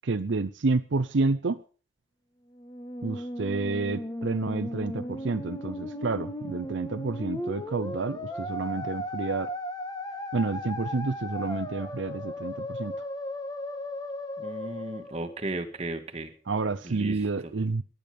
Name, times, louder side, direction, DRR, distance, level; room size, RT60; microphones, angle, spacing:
voice 1, 0.0-1.6 3.0-9.5 10.3-12.9 16.5-17.8, right 3 dB, 70° right, 10 dB, 0.6 m, -29 dB
Musical instrument, 2.5-15.9, left 1 dB, 20° left, 1.5 m, -36 dB
voice 2, 14.4-16.3 16.8-17.5, right 2 dB, 30° right, 5 dB, 1.9 m, -35 dB
19.0 x 11.0 x 5.2 m, 0.40 s
head